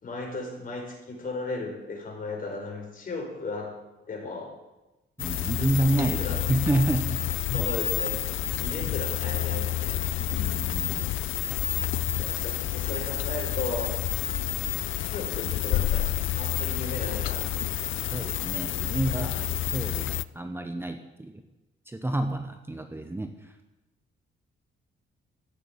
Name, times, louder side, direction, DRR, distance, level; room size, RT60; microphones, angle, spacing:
voice 1, 0.0-3.7 4.1-4.5 5.9-6.4 7.5-8.1 8.6-10.1 12.2-13.9 14.8-16.1 16.4-17.5, left 3 dB, 40° left, 1 dB, 4.7 m, -35 dB
sound 1, 5.2-20.3, left 14 dB, 70° left, 0.5 m, -29 dB
voice 2, 5.2-7.2 10.4-11.1 18.1-21.4 21.9-23.5, right 1 dB, 10° right, 7 dB, 0.9 m, -29 dB
13.5 x 9.9 x 8.3 m, 1.0 s
cardioid pair, 130°, 21 cm